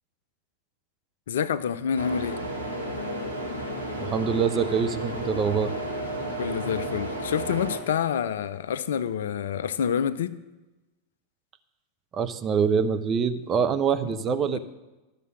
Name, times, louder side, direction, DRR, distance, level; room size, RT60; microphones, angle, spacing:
voice 1, 1.3-2.4 6.4-10.4 14.0-14.1 14.5-14.6, left 8 dB, 60° left, 14 dB, 0.5 m, -27 dB
sound 1, 1.9-7.8, right 1 dB, 90° right, 1.9 m, -32 dB
voice 2, 4.1-5.7 12.1-14.6, right 6 dB, 25° right, 9 dB, 0.7 m, -25 dB
12.5 x 6.7 x 6.2 m, 1.1 s
figure-of-eight pair, 90°, 0 cm